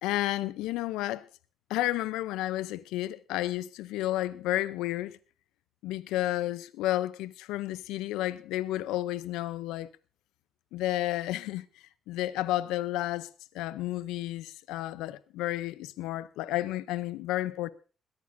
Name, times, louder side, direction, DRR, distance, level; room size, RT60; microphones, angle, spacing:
voice 1, 0.0-1.2 1.7-5.2 5.8-9.9 10.7-11.6 12.1-13.3 13.5-17.7, left 15 dB, 85° left, 0.5 m, -31 dB
21.0 x 14.0 x 2.6 m
supercardioid pair, 55°, 0 cm